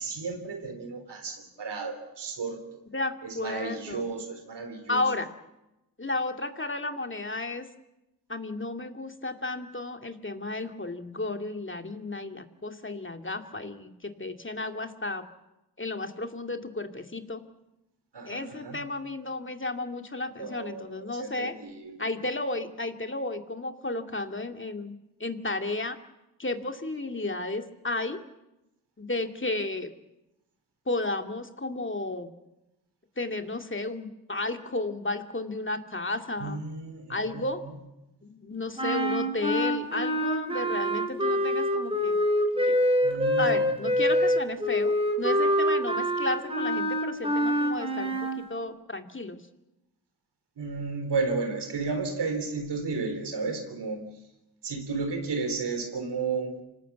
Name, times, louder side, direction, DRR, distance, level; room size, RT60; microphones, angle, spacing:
voice 1, 0.0-2.6 3.2-5.1 18.1-18.8 20.4-22.1 36.4-37.4 43.0-44.1 50.6-54.1 54.6-56.6, right 4 dB, 85° right, 6 dB, 3.6 m, -33 dB
voice 2, 2.9-4.1 4.9-5.3 6.0-7.7 8.3-15.3 15.8-17.4 18.2-21.6 22.0-24.9 25.2-26.0 26.4-28.2 29.0-29.9 30.9-32.3 33.2-36.6 37.1-37.6 38.2-42.2 42.6-42.8 43.4-49.4, left 2 dB, 30° left, 6 dB, 2.4 m, -33 dB
sound 1, 38.8-48.4, equal, 15° right, 3.9 m, -25 dB
26.0 x 18.5 x 8.3 m, 0.96 s
cardioid pair, 45°, 40 cm